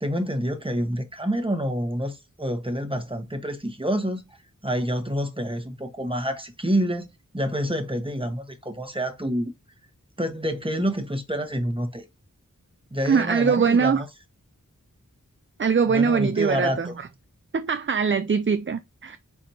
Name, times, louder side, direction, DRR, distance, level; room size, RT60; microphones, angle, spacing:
voice 1, 0.0-4.2 4.6-7.1 7.3-9.5 10.2-12.0 12.9-14.1 15.9-16.9, equal, 15° right, 1.3 m, -27 dB
voice 2, 13.0-14.0 15.6-17.1 17.5-19.2, right 6 dB, 40° right, 0.4 m, -22 dB
4.7 x 4.1 x 2.7 m
wide cardioid pair, 45°, 32 cm